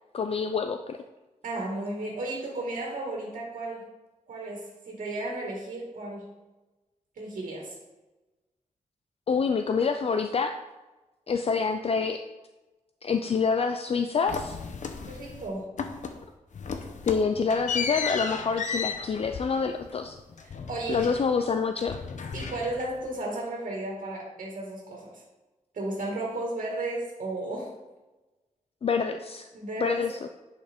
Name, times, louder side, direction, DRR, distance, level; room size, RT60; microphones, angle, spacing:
voice 1, 0.1-1.0 9.3-10.5 11.3-12.2 13.0-14.6 17.0-20.2 20.9-22.0 28.8-29.5 29.8-30.3, left 5 dB, 45° left, 7 dB, 0.4 m, -27 dB
voice 2, 1.4-3.9 4.3-6.3 7.2-7.7 15.1-15.7 20.4-21.2 22.3-25.2 25.7-27.7 29.5-30.1, right 2 dB, 90° right, -2 dB, 1.9 m, -34 dB
sound 1, 14.3-15.5 15.8-16.3 16.5-21.5 21.8-23.1, left 5 dB, 65° left, 0.8 m, -35 dB
10.0 x 5.5 x 3.6 m, 1.1 s
wide cardioid pair, 125°, 13 cm